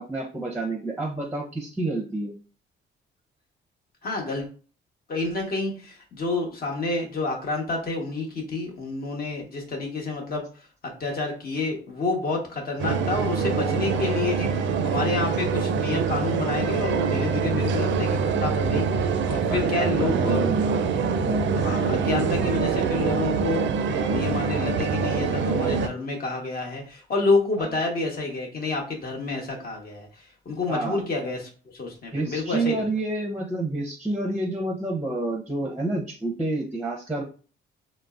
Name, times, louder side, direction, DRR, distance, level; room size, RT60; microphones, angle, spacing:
voice 1, 0.0-2.3 19.5-20.7 21.2-21.5 27.6-27.7 30.7-31.0 32.1-37.2, right 2 dB, 5° right, -1 dB, 0.6 m, -29 dB
voice 2, 4.0-4.5 5.1-10.4 11.0-20.4 21.5-32.8, left 3 dB, 50° left, 0 dB, 1.1 m, -29 dB
sound 1, 12.8-25.9, right 5 dB, 70° right, 0.4 m, -25 dB
3.8 x 2.1 x 2.4 m, 0.38 s
cardioid pair, 90°, 20 cm